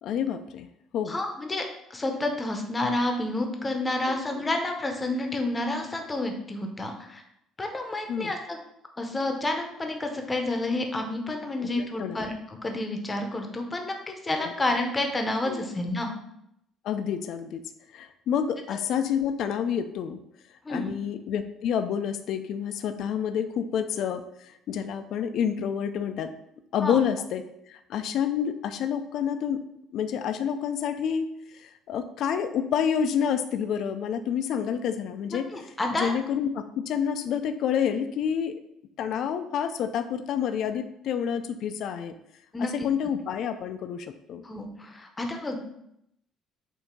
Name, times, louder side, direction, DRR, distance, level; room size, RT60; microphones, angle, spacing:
voice 1, 0.0-0.7 0.9-1.2 4.1-4.2 8.1-8.3 11.6-12.3 14.4-14.5 15.5-15.6 16.8-17.6 17.9-20.2 20.7-26.3 26.7-27.4 27.7-29.6 29.9-38.6 39.0-42.1 42.6-44.4, left 8 dB, 50° left, 9 dB, 0.4 m, -29 dB
voice 2, 1.1-1.6 1.9-7.2 7.6-8.6 9.0-16.1 20.6-20.9 26.8-27.0 35.3-36.1 42.5-42.7 44.4-45.6, left 2 dB, 15° left, 4 dB, 0.7 m, -29 dB
7.2 x 2.7 x 5.1 m, 0.77 s
cardioid pair, 175°, 0 cm